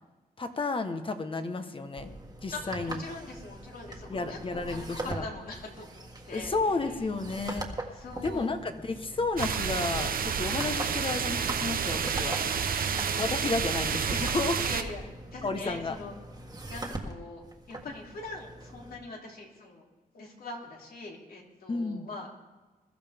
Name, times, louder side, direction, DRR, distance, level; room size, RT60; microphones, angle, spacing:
voice 1, 0.4-2.1 2.4-3.0 4.1-5.2 6.3-7.7 8.2-12.4 13.2-14.6 15.4-16.0 21.7-22.1, left 3 dB, 35° left, 8 dB, 1.2 m, -32 dB
sound 1, 2.0-18.9, right 2 dB, 25° right, 1.6 m, -42 dB
voice 2, 2.5-6.5 6.9-7.0 7.9-8.6 12.8-13.5 14.6-15.0 15.3-16.1 16.7-19.9 20.1-22.4, left 2 dB, 65° left, -1 dB, 3.1 m, -43 dB
sound 2, 9.4-14.8, right 7 dB, 65° right, 0.8 m, -29 dB
21.5 x 13.5 x 3.6 m, 1.2 s
wide cardioid pair, 130°, 16 cm